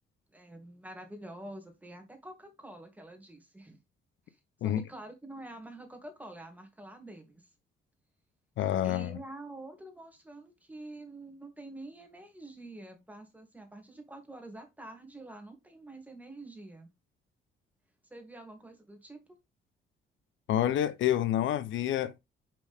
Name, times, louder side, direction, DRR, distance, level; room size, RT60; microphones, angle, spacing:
voice 1, 0.3-3.8 4.3-4.4 4.6-7.5 8.8-16.9 18.1-19.4, right 2 dB, 10° right, 2.5 m, -47 dB
voice 2, 8.6-9.2 20.5-22.2, left 11 dB, 75° left, 0.7 m, -28 dB
6.0 x 4.9 x 3.4 m
cardioid pair, 90°, 20 cm